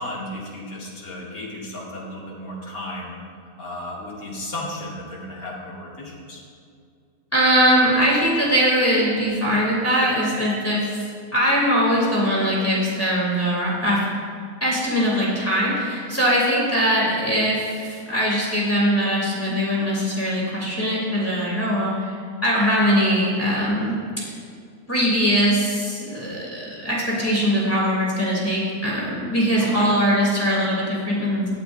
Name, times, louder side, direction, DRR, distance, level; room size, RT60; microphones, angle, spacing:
voice 1, 0.0-3.2 3.6-6.4 29.6-29.9, left 1 dB, 65° left, -4 dB, 2.7 m, -34 dB
voice 2, 7.3-11.0 11.3-14.0 14.6-22.1 22.4-23.9 24.9-31.5, equal, 10° left, -6 dB, 3.1 m, -21 dB
17.5 x 11.0 x 2.7 m, 2.3 s
omnidirectional pair, 1.6 m